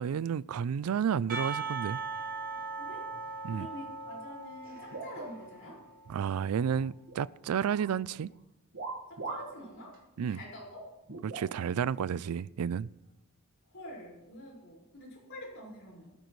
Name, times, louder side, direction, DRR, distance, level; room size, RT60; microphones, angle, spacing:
voice 1, 0.0-2.0 3.4-3.7 6.1-8.3 10.2-10.4 11.2-12.9, right 7 dB, 90° right, 0.4 m, -31 dB
Percussion / Church bell, 1.3-6.3, right 4 dB, 40° right, 2.7 m, -39 dB
voice 2, 2.8-3.1 3.5-5.8 9.1-10.8 13.7-16.2, equal, 60° left, 5.1 m, -47 dB
sound 1, 4.8-5.9 6.2-7.3 7.6-8.0 8.7-9.6 9.9-10.0 11.1-11.9 12.8-12.9 13.8-14.0, right 3 dB, 65° right, 1.7 m, -42 dB
17.5 x 14.0 x 3.2 m
head